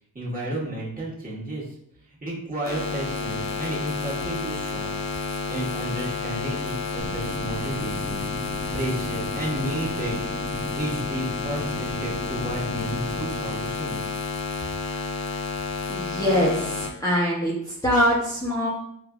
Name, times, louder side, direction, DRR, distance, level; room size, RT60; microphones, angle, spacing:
voice 1, 0.1-1.6 2.2-5.0 5.5-8.3 8.7-14.1, right 1 dB, 25° right, -6 dB, 1.3 m, -32 dB
sound 1, 2.6-16.9, left 4 dB, 50° left, 0.7 m, -30 dB
sound 2, 7.0-13.4, equal, 30° left, 1.2 m, -37 dB
voice 2, 15.9-18.7, equal, 10° left, -7 dB, 0.9 m, -23 dB
5.0 x 2.4 x 2.4 m, 0.71 s
cardioid pair, 85°, 36 cm